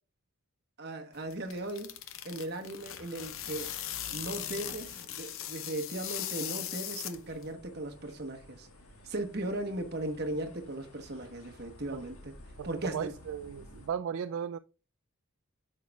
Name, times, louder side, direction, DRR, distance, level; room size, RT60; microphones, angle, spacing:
voice 1, 0.8-1.9 2.2-3.7 4.1-8.7 9.0-12.3 12.6-13.1, right 1 dB, 45° right, 1.2 m, -37 dB
sound 1, 1.1-7.5, left 11 dB, 60° left, 0.7 m, -39 dB
sound 2, 7.1-13.9, left 1 dB, 80° left, 1.5 m, -54 dB
voice 2, 12.6-14.6, right 8 dB, 65° right, 0.3 m, -36 dB
9.2 x 6.5 x 2.3 m
head